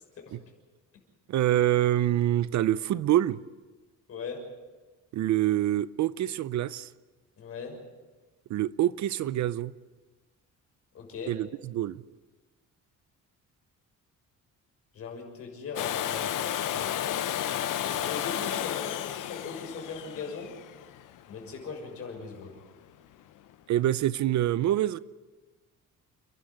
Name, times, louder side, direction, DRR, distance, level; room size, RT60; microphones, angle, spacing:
voice 1, 1.3-3.4 5.1-6.9 8.5-9.7 11.3-12.0 23.7-25.0, right 13 dB, 60° right, 0.6 m, -26 dB
voice 2, 4.1-4.5 7.4-7.8 10.9-11.4 14.9-17.2 17.7-20.5 21.3-22.6, left 5 dB, 45° left, 6.5 m, -40 dB
Domestic sounds home sounds, 15.8-21.6 23.5-23.6, left 11 dB, 75° left, 1.1 m, -32 dB
29.5 x 11.5 x 9.4 m
cardioid pair, 175°, 32 cm